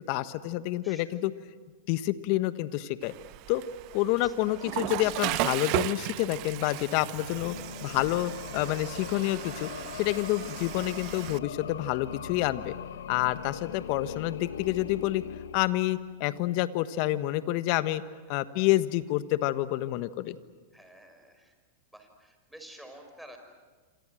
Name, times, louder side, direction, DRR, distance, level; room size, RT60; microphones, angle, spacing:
voice 1, 0.1-1.3 1.9-3.1 3.5-3.6 3.9-7.6 7.8-9.7 10.0-12.7 13.1-15.2 15.5-18.0 18.3-20.4, left 16 dB, 55° left, 13 dB, 1.4 m, -28 dB
voice 2, 0.8-1.2 4.0-4.4 18.3-18.4 20.7-21.5 21.9-23.4, right 1 dB, ahead, 4 dB, 5.8 m, -51 dB
Water / Toilet flush, 3.0-11.4, right 18 dB, 50° right, 0.9 m, -36 dB
sound 1, 7.2-16.3, left 8 dB, 85° left, 1.1 m, -41 dB
27.5 x 27.0 x 7.8 m, 1.4 s
hypercardioid pair, 115°, 0 cm